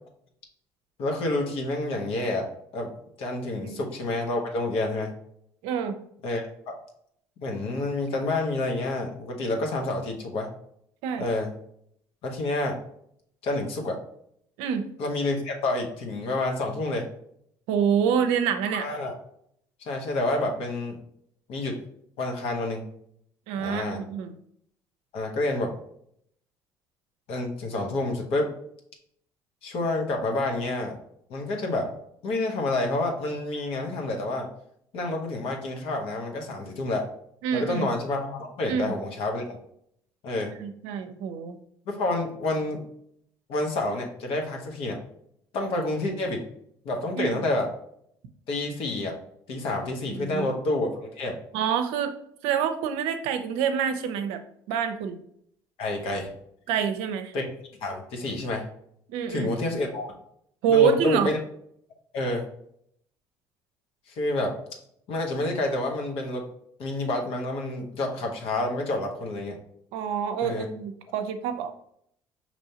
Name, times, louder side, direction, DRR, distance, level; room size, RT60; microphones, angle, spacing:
voice 1, 1.0-2.5 2.7-2.9 3.2-5.1 6.2-6.7 7.4-10.5 11.2-11.5 12.2-12.8 13.4-14.0 15.0-17.1 18.7-19.1 19.9-21.0 21.5-21.8 22.2-22.8 23.6-24.0 25.1-25.7 27.3-28.5 29.6-30.9 31.3-31.9 32.2-34.5 34.9-37.1 37.5-39.6 40.2-40.5 41.9-42.8 43.5-45.0 45.5-46.4 46.8-47.7 48.5-49.2 49.5-51.4 55.8-56.3 57.3-57.4 57.8-58.7 59.3-60.1 60.7-61.4 62.1-62.4 64.1-64.5 65.1-66.4 66.8-69.6 70.4-70.7, left 2 dB, 65° left, 2 dB, 1.1 m, -28 dB
voice 2, 5.6-6.0 11.0-11.3 14.6-14.9 17.7-18.9 23.5-24.3 37.4-37.9 38.7-38.9 40.6-41.6 47.2-47.4 50.1-50.5 51.5-52.1 52.4-54.4 54.7-55.2 56.7-57.3 59.1-59.5 60.6-61.3 69.9-71.7, right 7 dB, 75° right, 8 dB, 0.5 m, -26 dB
5.4 x 3.0 x 2.8 m, 0.69 s
hypercardioid pair, 65°, 10 cm